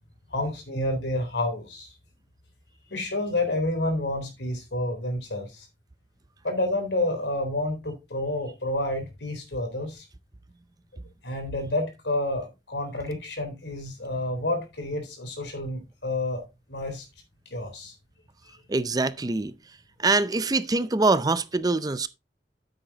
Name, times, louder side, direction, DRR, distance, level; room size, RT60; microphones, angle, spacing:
voice 1, 0.3-1.9 2.9-5.7 6.4-10.1 11.2-16.4 16.7-17.1 17.5-17.9, left 1 dB, 85° left, 3.6 m, -29 dB
voice 2, 18.7-19.5 20.0-22.1, right 3 dB, 20° right, 0.5 m, -24 dB
10.0 x 7.9 x 2.8 m
head